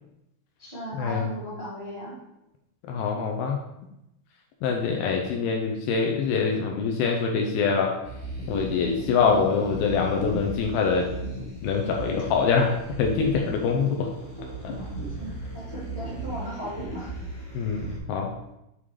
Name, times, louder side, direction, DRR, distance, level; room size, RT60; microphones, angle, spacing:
voice 1, 0.6-2.2 9.1-9.3 14.7-14.9 15.2-17.1, right 1 dB, 75° right, -7 dB, 0.6 m, -37 dB
voice 2, 2.9-3.6 4.6-8.0 8.5-11.1 11.6-12.7 13.0-14.1 14.6-14.7 17.5-18.3, left 5 dB, 80° left, 1 dB, 2.2 m, -24 dB
sound 1, 8.0-18.0, right 1 dB, 40° left, 1.0 m, -36 dB
8.5 x 3.7 x 4.7 m, 0.88 s
omnidirectional pair, 4.9 m